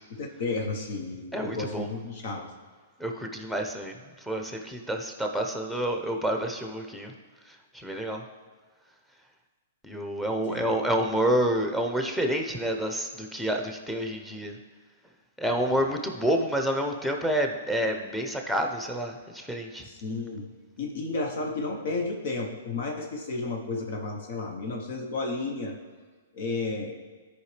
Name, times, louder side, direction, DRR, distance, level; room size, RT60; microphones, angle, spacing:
voice 1, 0.1-2.5 10.4-10.8 15.8-15.9 19.8-20.5 20.8-25.8 26.3-27.0, left 3 dB, 60° left, 2 dB, 1.2 m, -32 dB
voice 2, 1.3-1.9 3.0-3.9 4.3-7.1 7.5-8.2 9.8-14.6 15.4-19.9, right 1 dB, 5° left, 3 dB, 0.9 m, -28 dB
13.0 x 5.0 x 3.4 m, 1.5 s
hypercardioid pair, 130°, 0 cm